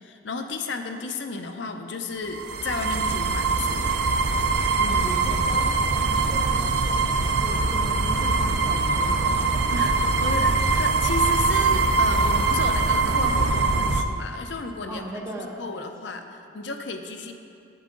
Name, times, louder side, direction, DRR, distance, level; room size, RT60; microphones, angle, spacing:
voice 1, 0.0-3.8 4.8-5.1 9.7-15.0 15.6-17.3, left 4 dB, 65° left, 6 dB, 0.6 m, -33 dB
sound 1, 2.2-14.0, right 3 dB, 65° right, 0.5 m, -22 dB
voice 2, 4.9-9.6 14.9-15.8, right 1 dB, 15° right, -1 dB, 1.0 m, -38 dB
10.5 x 8.3 x 3.8 m, 2.5 s
head